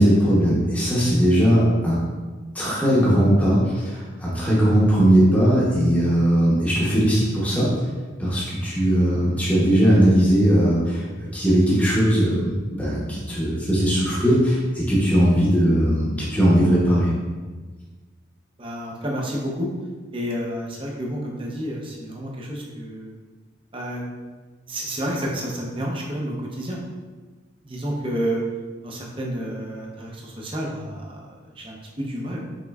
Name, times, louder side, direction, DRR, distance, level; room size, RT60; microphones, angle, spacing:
voice 1, 0.0-2.0 2.5-7.7 8.2-17.1, equal, 5° left, -8 dB, 0.8 m, -19 dB
voice 2, 18.6-19.7 20.1-23.1 23.7-24.1 24.7-26.8 27.6-28.4 28.8-32.4, equal, 25° right, -1 dB, 0.6 m, -30 dB
5.3 x 3.6 x 2.3 m, 1.3 s
head